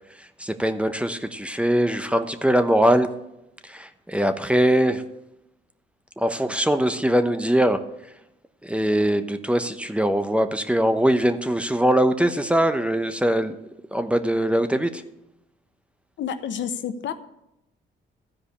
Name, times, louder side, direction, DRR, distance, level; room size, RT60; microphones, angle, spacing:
voice 1, 0.4-3.1 3.6-5.0 6.2-7.8 8.6-13.6 13.9-15.0, right 1 dB, 5° right, 9 dB, 0.9 m, -22 dB
voice 2, 16.2-17.1, left 8 dB, 70° left, 10 dB, 1.0 m, -29 dB
13.5 x 5.1 x 8.5 m, 0.87 s
cardioid pair, 90°, 20 cm